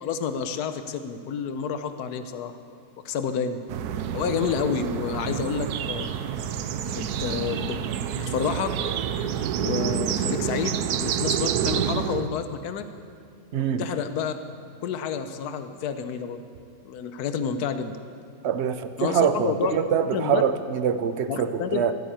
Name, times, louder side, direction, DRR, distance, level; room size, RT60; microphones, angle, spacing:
voice 1, 0.0-2.5 3.0-3.6 4.1-6.1 6.9-7.8 8.1-8.9 9.6-12.9 13.5-14.3 14.8-16.4 16.8-18.0 19.0-19.8 20.1-20.4 21.3-21.8, left 7 dB, 80° left, 9 dB, 1.3 m, -29 dB
sound 1, 3.7-12.3, right 8 dB, 85° right, 1.2 m, -28 dB
voice 2, 13.5-13.8 18.4-21.9, right 7 dB, 55° right, 10 dB, 0.8 m, -24 dB
15.0 x 9.3 x 8.7 m, 2.3 s
omnidirectional pair, 1.6 m